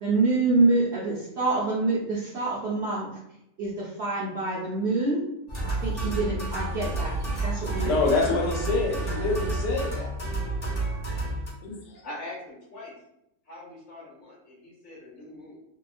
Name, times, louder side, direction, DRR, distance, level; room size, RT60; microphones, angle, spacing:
voice 1, 0.0-3.1 3.6-5.2 5.6-8.0 8.2-8.5, right 3 dB, 85° right, -7 dB, 0.5 m, -26 dB
sound 1, 5.5-11.5, right 2 dB, 40° left, 0.6 m, -30 dB
voice 2, 7.8-10.1 10.5-10.6 11.6-12.0, left 3 dB, 80° left, 0 dB, 1.3 m, -27 dB
voice 3, 12.0-12.9 13.5-15.6, left 1 dB, 60° left, -6 dB, 1.0 m, -42 dB
2.8 x 2.2 x 2.4 m, 0.79 s
omnidirectional pair, 1.9 m